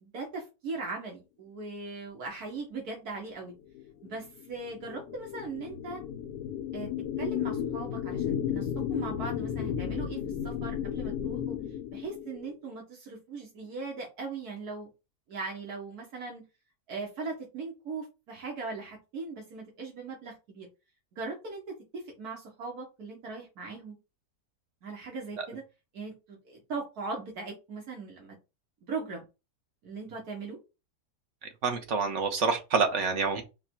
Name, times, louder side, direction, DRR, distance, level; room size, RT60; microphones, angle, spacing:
voice 1, 0.0-3.5 4.0-6.0 6.7-6.9 7.2-11.6 11.9-14.9 15.3-16.4 16.9-20.7 21.1-24.0 24.8-25.6 25.9-28.3 28.9-29.2 29.8-30.6, right 4 dB, 70° right, 1.6 m, -39 dB
sound 1, 3.7-12.5, left 9 dB, 90° left, 1.3 m, -34 dB
voice 2, 31.6-33.4, right 5 dB, 55° right, 1.1 m, -27 dB
4.9 x 2.2 x 4.3 m
omnidirectional pair, 1.7 m